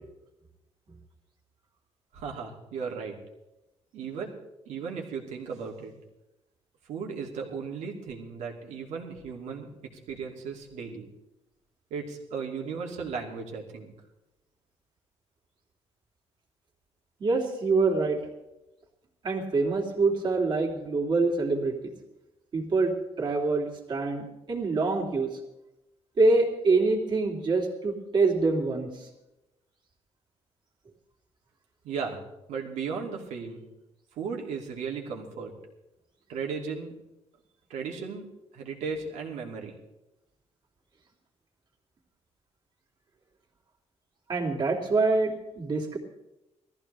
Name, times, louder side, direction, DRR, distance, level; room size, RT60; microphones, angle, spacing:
voice 1, 2.1-3.2 3.9-4.3 4.7-5.9 6.9-9.7 10.1-11.1 11.9-13.9 31.8-32.2 32.5-33.6 34.2-35.5 36.3-36.9 37.7-38.3 38.5-39.7, right 5 dB, 85° right, 0 dB, 2.6 m, -35 dB
voice 2, 17.2-18.2 19.2-21.9 22.5-25.3 26.2-28.9 44.3-46.0, right 3 dB, 40° right, -2 dB, 3.0 m, -25 dB
19.5 x 14.5 x 3.4 m, 0.95 s
cardioid pair, 140°, 12 cm